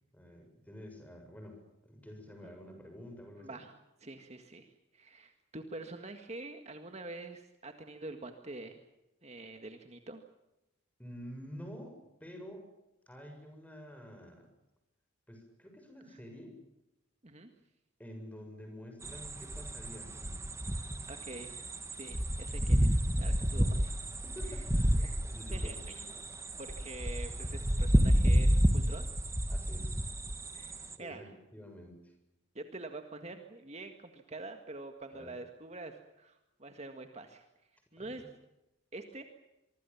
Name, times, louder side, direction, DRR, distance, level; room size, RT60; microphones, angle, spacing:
voice 1, 0.1-1.6 1.8-3.6 11.0-12.7 13.1-14.5 15.3-16.6 18.0-20.4 23.5-23.9 24.2-24.9 25.2-26.3 29.5-30.0 31.0-32.1 35.1-35.3 38.0-38.2, equal, 10° left, 4 dB, 7.3 m, -49 dB
voice 2, 3.4-3.7 4.0-8.8 9.2-10.2 16.1-16.2 17.2-17.5 21.1-23.9 24.5-24.6 24.9-25.2 25.5-26.0 26.6-29.1 30.5-31.4 32.6-37.4 37.9-38.2 38.9-39.2, right 2 dB, 35° right, 6 dB, 1.8 m, -46 dB
sound 1, 19.0-30.9, equal, 15° right, 1.7 m, -30 dB
25.5 x 24.5 x 7.2 m, 0.92 s
head